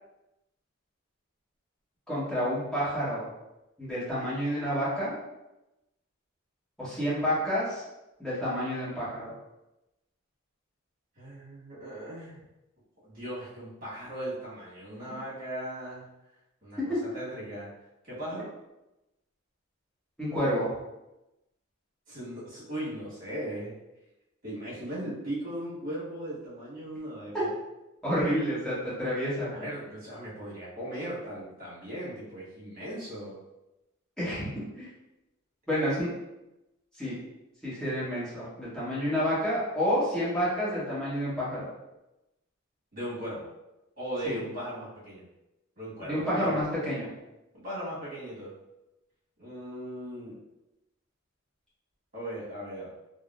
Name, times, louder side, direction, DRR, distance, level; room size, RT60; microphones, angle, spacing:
voice 1, 2.1-3.3 3.8-5.1 6.8-7.8 8.2-9.3 20.2-20.7 27.3-27.4 28.0-29.5 34.2-34.5 34.7-34.9 35.7-36.1 37.0-37.2 37.6-41.6 44.2-44.4 46.1-47.1, equal, 5° left, -10 dB, 1.1 m, -29 dB
voice 2, 11.2-12.4 13.0-16.1 16.6-17.7 18.0-18.5 22.1-23.7 24.4-27.5 29.5-33.4 42.9-43.4 44.0-45.2 45.8-46.6 47.5-48.5 49.4-50.4 52.1-52.9, right 1 dB, 40° right, -8 dB, 1.5 m, -38 dB
3.5 x 2.0 x 2.4 m, 0.95 s
head